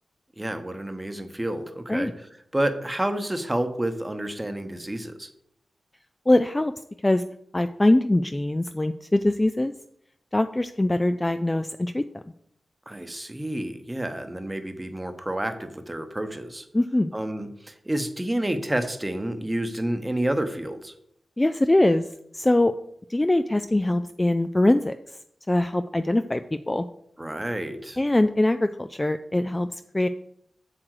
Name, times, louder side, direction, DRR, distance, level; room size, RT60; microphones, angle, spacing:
voice 1, 0.4-2.3 2.5-5.3 12.9-16.6 17.1-20.9 27.2-28.0, right 1 dB, 10° right, 8 dB, 0.9 m, -29 dB
voice 2, 6.3-6.7 7.0-7.2 7.5-9.7 10.3-12.2 16.7-17.1 21.4-22.1 22.3-22.7 23.1-24.9 25.5-26.4 26.7-26.9 28.0-30.1, left 1 dB, 15° left, 9 dB, 0.3 m, -22 dB
7.6 x 7.6 x 4.8 m, 0.72 s
wide cardioid pair, 145°, 0 cm